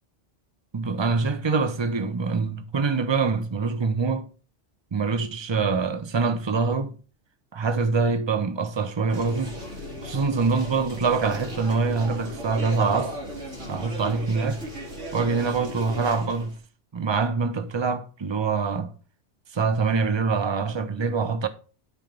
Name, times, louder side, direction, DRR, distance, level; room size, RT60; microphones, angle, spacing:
voice 1, 0.7-4.3 4.9-7.0 7.5-9.6 10.0-13.2 13.7-14.6 15.1-16.6 16.9-18.9 19.5-21.5, right 4 dB, 25° right, 0.8 m, -25 dB
sound 1, 9.1-16.6, equal, 80° right, 3.2 m, -37 dB
10.0 x 4.6 x 5.3 m
omnidirectional pair, 1.2 m